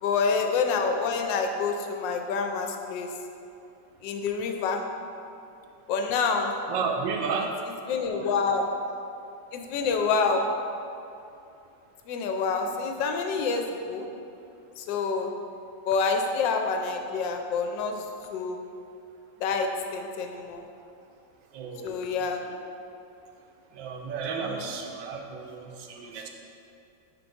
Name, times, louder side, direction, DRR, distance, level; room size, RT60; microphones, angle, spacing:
voice 1, 0.0-3.1 4.0-4.8 5.9-6.5 7.9-8.7 9.5-10.5 12.1-14.1 14.8-15.3 15.9-17.9 18.3-18.6 19.4-20.6 21.8-22.4 24.4-24.7, left 5 dB, 80° left, 4 dB, 1.2 m, -27 dB
voice 2, 6.7-7.5 8.1-8.3 21.5-22.0 22.4-22.5 23.7-26.3, right 5 dB, 90° right, 2 dB, 1.4 m, -32 dB
4.5 x 4.0 x 5.2 m, 2.7 s
omnidirectional pair, 2.0 m